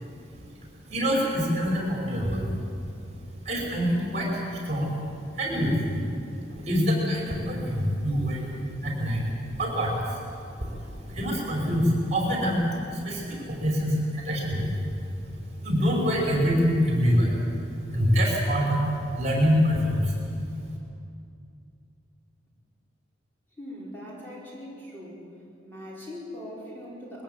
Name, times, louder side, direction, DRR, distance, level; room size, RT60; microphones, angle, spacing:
voice 1, 0.9-2.6 3.4-4.9 5.3-6.0 6.4-9.2 9.5-12.6 12.9-14.8 15.6-17.4 17.9-18.9 19.1-20.2, equal, 35° right, -2 dB, 5.2 m, -25 dB
voice 2, 23.6-25.3 25.6-27.2, left 1 dB, 10° left, -6 dB, 4.8 m, -41 dB
21.5 x 15.5 x 9.1 m, 2.5 s
head